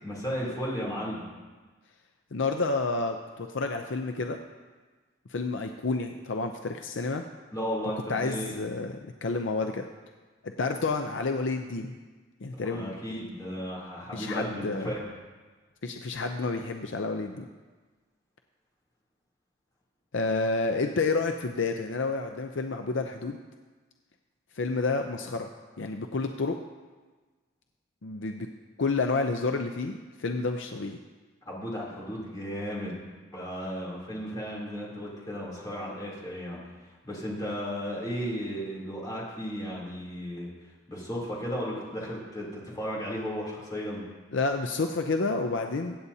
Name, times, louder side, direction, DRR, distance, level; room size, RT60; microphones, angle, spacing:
voice 1, 0.0-1.3 7.5-8.5 12.5-15.1 31.4-32.9 33.3-36.6 37.0-40.5 40.9-44.0, equal, 20° left, -5 dB, 3.1 m, -34 dB
voice 2, 2.3-4.4 5.3-7.2 8.1-9.9 10.4-11.9 12.4-13.0 14.1-14.9 15.8-17.5 20.1-23.4 24.5-25.5 25.8-26.6 28.0-28.5 28.8-31.0 44.3-46.0, left 3 dB, 60° left, 5 dB, 0.6 m, -29 dB
24.0 x 8.6 x 2.8 m, 1.3 s
head